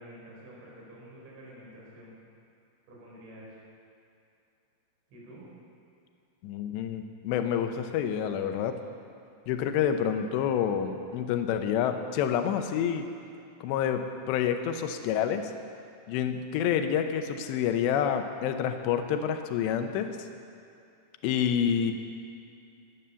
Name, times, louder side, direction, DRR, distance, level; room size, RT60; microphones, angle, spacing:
voice 1, 0.0-2.1 2.9-3.6 5.1-5.4, equal, 85° right, -5 dB, 6.6 m, -48 dB
voice 2, 6.4-8.8 9.5-13.1 13.6-15.5 16.1-20.2 21.2-21.9, left 8 dB, 80° left, 7 dB, 3.0 m, -28 dB
16.5 x 11.0 x 7.0 m, 2.6 s
omnidirectional pair, 5.3 m